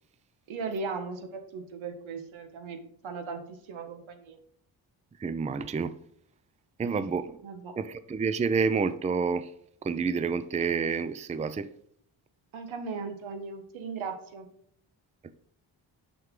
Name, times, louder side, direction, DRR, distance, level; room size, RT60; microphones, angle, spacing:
voice 1, 0.5-2.8 3.0-4.4 6.8-7.1 7.4-7.7 12.5-14.5, right 4 dB, 90° right, 1.4 m, -37 dB
voice 2, 5.2-5.9 6.8-7.4 7.8-9.5 9.8-11.7, right 5 dB, 15° right, 0.4 m, -28 dB
6.2 x 6.0 x 3.7 m
cardioid pair, 100°, 46 cm